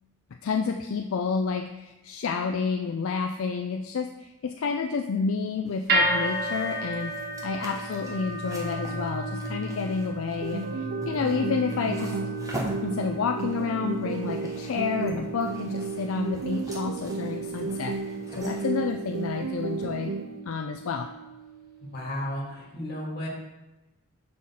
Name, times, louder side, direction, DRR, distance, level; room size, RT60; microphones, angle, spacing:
voice 1, 0.4-7.2 7.4-12.2 12.8-18.0 18.3-20.1 20.5-21.1, left 5 dB, 70° left, 4 dB, 0.4 m, -30 dB
sound 1, 5.7-20.0, right 1 dB, 15° right, 0.8 m, -44 dB
sound 2, 5.9-22.1, right 1 dB, 45° right, 1.3 m, -34 dB
sound 3, 10.4-20.4, right 4 dB, 60° right, 0.4 m, -33 dB
voice 2, 21.8-23.3, left 1 dB, 45° left, -2 dB, 1.7 m, -33 dB
6.3 x 5.5 x 4.2 m, 1.0 s
head